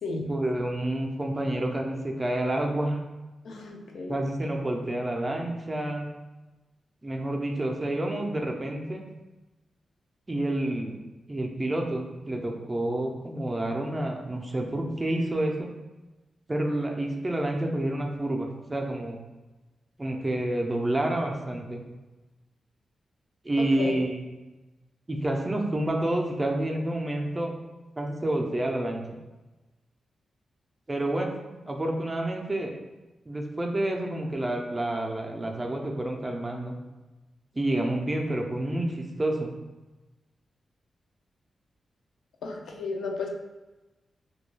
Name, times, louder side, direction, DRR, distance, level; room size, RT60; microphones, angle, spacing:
voice 1, 0.3-3.0 4.1-6.1 7.0-9.0 10.3-11.0 11.3-15.7 16.5-19.2 20.0-21.8 23.4-24.2 25.1-27.5 28.0-29.0 30.9-31.3 31.7-32.7 33.3-36.7 37.5-39.5, right 1 dB, 20° right, 1 dB, 0.3 m, -29 dB
voice 2, 3.4-4.2 23.8-24.0 42.4-43.3, left 3 dB, 85° left, 1 dB, 0.4 m, -34 dB
2.2 x 2.2 x 3.2 m, 1.1 s
wide cardioid pair, 125°, 0 cm